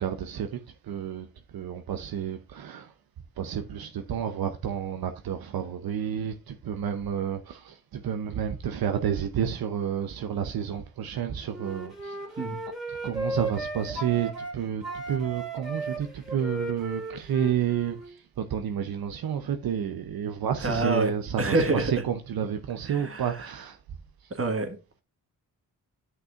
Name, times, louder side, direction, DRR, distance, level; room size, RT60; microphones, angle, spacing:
voice 1, 0.0-2.9 3.4-12.5 12.9-23.8, right 8 dB, 80° right, 0.8 m, -30 dB
Wind instrument woodwind instrument, 11.5-14.5 14.8-18.1, right 2 dB, ahead, 2.6 m, -35 dB
voice 2, 20.6-21.1 21.4-21.9 22.9-23.2 24.3-24.8, right 2 dB, 40° right, 1.7 m, -26 dB
11.0 x 6.0 x 2.5 m
cardioid pair, 55°, 36 cm